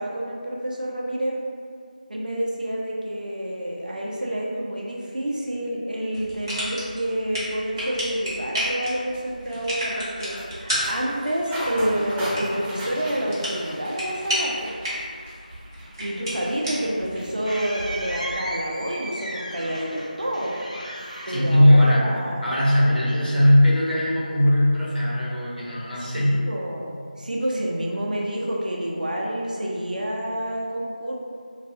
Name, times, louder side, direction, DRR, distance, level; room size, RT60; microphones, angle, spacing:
voice 1, 0.0-1.4 2.1-14.7 16.0-20.5 21.3-22.6 26.1-31.1, right 1 dB, 65° right, -3 dB, 0.5 m, -28 dB
sound 1, 6.1-18.0, equal, 30° right, 0.7 m, -32 dB
sound 2, 8.6-16.8 17.1-17.8 18.2-18.5, equal, 5° left, 0.5 m, -37 dB
sound 3, 16.5-22.3, right 1 dB, 50° left, 0.6 m, -36 dB
voice 2, 21.3-22.1 22.4-26.4, left 1 dB, 90° left, -7 dB, 0.9 m, -19 dB
2.3 x 2.2 x 2.7 m, 2.2 s
figure-of-eight pair, 170°, 5 cm